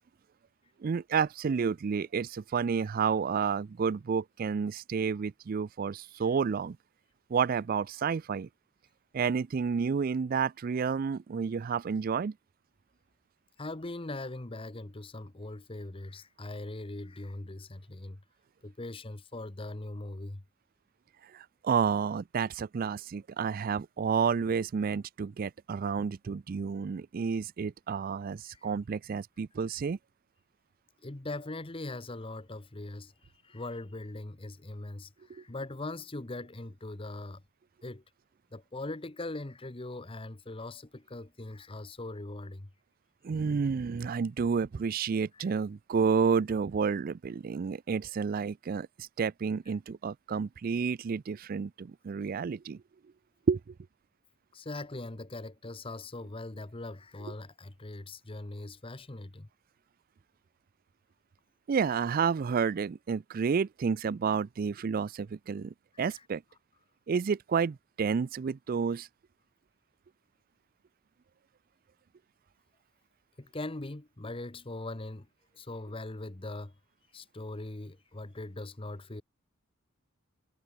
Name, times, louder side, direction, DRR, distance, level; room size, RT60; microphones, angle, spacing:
voice 1, 0.8-6.8 7.3-8.5 9.1-12.3 21.2-30.0 35.3-35.4 43.2-52.8 53.5-53.7 61.7-66.4 67.1-69.1, right 6 dB, 45° right, 0.4 m, -30 dB
voice 2, 13.6-18.2 18.6-20.4 28.5-28.6 31.0-33.1 33.4-37.4 37.8-38.0 38.5-42.7 45.3-45.5 54.5-59.5 65.9-66.2 73.4-75.3 75.5-76.8 77.1-79.2, left 2 dB, 25° left, 1.0 m, -41 dB
head